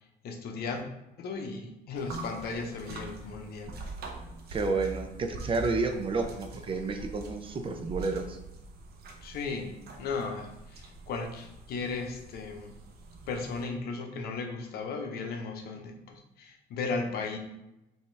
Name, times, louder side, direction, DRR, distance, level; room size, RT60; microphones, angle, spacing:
voice 1, 0.2-0.8 1.2-3.7 9.2-12.7 13.3-17.4, left 4 dB, 70° left, 4 dB, 0.8 m, -36 dB
sound 1, 2.0-13.6, right 3 dB, 65° right, 0.8 m, -44 dB
voice 2, 4.5-8.4, right 3 dB, 30° right, 5 dB, 0.6 m, -30 dB
5.6 x 2.7 x 3.3 m, 0.92 s
cardioid pair, 110°, 17 cm